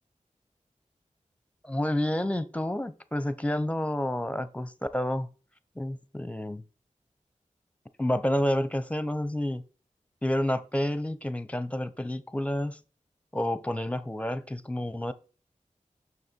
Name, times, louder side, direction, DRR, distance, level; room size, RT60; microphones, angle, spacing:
voice 1, 1.6-5.3 5.8-6.6 8.0-9.6 10.2-12.8 13.3-15.1, left 1 dB, 10° left, 0.8 m, -29 dB
6.5 x 6.2 x 4.5 m
wide cardioid pair, 60°, 14 cm